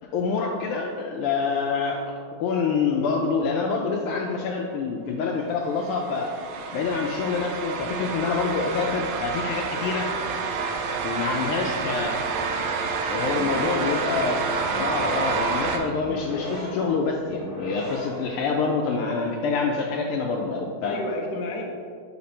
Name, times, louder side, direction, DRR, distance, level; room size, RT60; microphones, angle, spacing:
voice 1, 0.0-2.0 2.4-6.3 6.7-10.1 11.0-12.2 13.1-14.4 14.7-21.0, left 4 dB, 85° left, 0 dB, 1.5 m, -26 dB
sound 1, 5.7-15.8, right 5 dB, 75° right, 1.3 m, -28 dB
voice 2, 13.2-14.3 15.0-15.2 20.8-21.6, left 2 dB, 65° left, 0 dB, 1.1 m, -33 dB
sound 2, 13.2-18.4, equal, 25° left, 1.5 m, -37 dB
6.4 x 4.2 x 4.2 m, 2.2 s
omnidirectional pair, 2.4 m